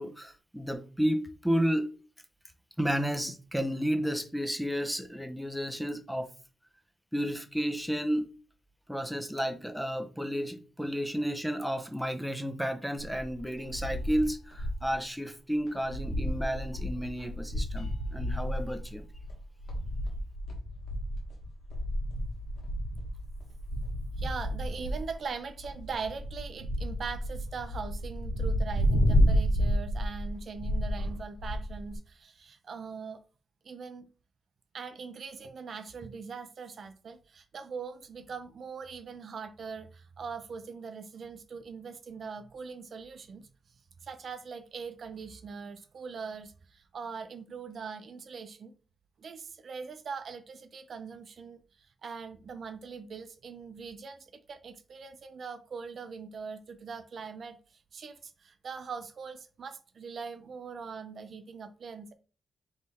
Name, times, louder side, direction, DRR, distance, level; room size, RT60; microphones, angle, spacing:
voice 1, 0.0-1.9 2.8-6.3 7.1-8.2 8.9-19.1, equal, ahead, 0.6 m, -32 dB
sound 1, 13.0-14.9 15.3-15.4 15.7-32.0, equal, 75° left, 1.4 m, -31 dB
voice 2, 24.2-33.2 33.6-34.1 34.7-43.5 44.0-48.7 49.2-62.1, right 5 dB, 55° right, 0.5 m, -41 dB
3.6 x 3.2 x 4.2 m
cardioid pair, 110°, 0 cm